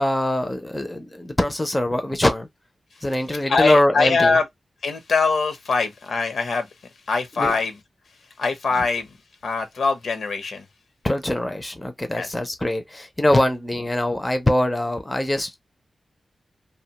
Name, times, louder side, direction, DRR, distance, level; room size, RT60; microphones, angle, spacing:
voice 1, 0.0-2.5 3.0-4.4 7.4-7.6 11.0-15.6, left 1 dB, 10° left, 0.4 m, -23 dB
voice 2, 3.5-4.4 4.8-6.7 7.1-7.7 8.4-9.1 9.4-10.7 12.1-12.3, left 4 dB, 75° left, 0.7 m, -22 dB
2.6 x 2.1 x 2.8 m
wide cardioid pair, 135°, 0 cm